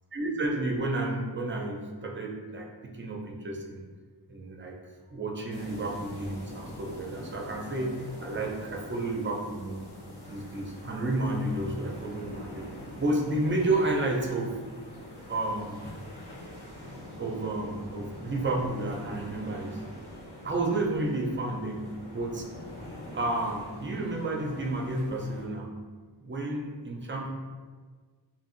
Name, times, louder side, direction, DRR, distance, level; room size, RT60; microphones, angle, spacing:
voice 1, 0.1-3.8 4.3-4.8 5.1-9.9 10.3-12.7 13.0-14.6 15.3-15.8 17.2-19.8 20.4-22.5 23.1-25.7 26.2-27.3, right 2 dB, 25° right, 0 dB, 0.5 m, -31 dB
sound 1, 5.5-25.5, left 1 dB, 65° left, 1.1 m, -44 dB
2.8 x 2.6 x 2.5 m, 1.5 s
cardioid pair, 55°, 43 cm